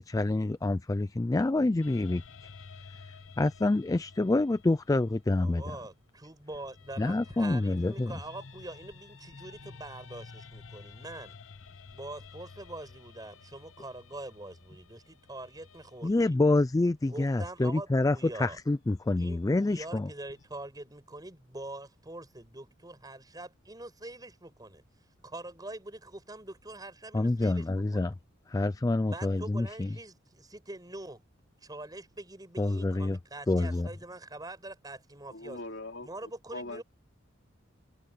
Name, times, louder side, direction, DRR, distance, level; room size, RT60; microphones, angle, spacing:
voice 1, 0.0-2.5 3.4-5.6 7.0-8.1 16.0-20.1 27.1-28.1 28.5-29.9 32.6-33.2 33.5-33.9, left 2 dB, 15° left, 0.3 m, -27 dB
sound 1, 1.8-6.0 6.5-16.6 18.6-20.5, left 4 dB, 90° left, 1.0 m, -52 dB
voice 2, 5.4-11.4 11.9-16.4 17.0-18.6 19.2-24.8 25.2-28.1 29.1-31.2 31.6-35.6 36.0-36.8, right 2 dB, 20° right, 5.0 m, -44 dB
voice 3, 35.3-36.8, left 2 dB, 60° left, 3.8 m, -42 dB
head